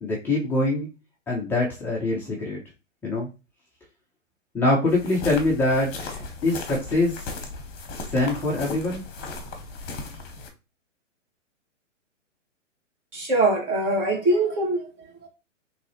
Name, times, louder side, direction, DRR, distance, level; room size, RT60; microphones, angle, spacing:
voice 1, 0.0-0.9 1.3-2.6 3.0-3.3 4.5-7.2 8.1-9.0, left 2 dB, 5° left, 0.4 m, -24 dB
sound 1, 4.9-10.5, left 3 dB, 25° left, 0.9 m, -37 dB
voice 2, 13.1-15.3, right 2 dB, 40° right, 2.1 m, -23 dB
3.6 x 3.1 x 3.1 m
hypercardioid pair, 125°, 37 cm